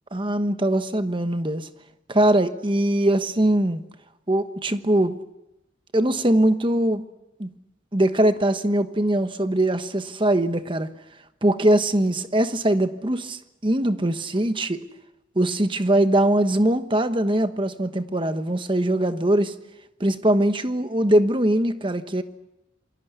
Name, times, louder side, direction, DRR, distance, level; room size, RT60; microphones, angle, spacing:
voice 1, 0.1-1.7 2.1-3.8 4.3-5.2 5.9-7.0 7.4-7.5 7.9-10.9 11.4-14.8 15.3-19.5 20.0-22.2, right 1 dB, 25° right, 9 dB, 1.2 m, -21 dB
28.0 x 22.0 x 8.2 m, 0.93 s
head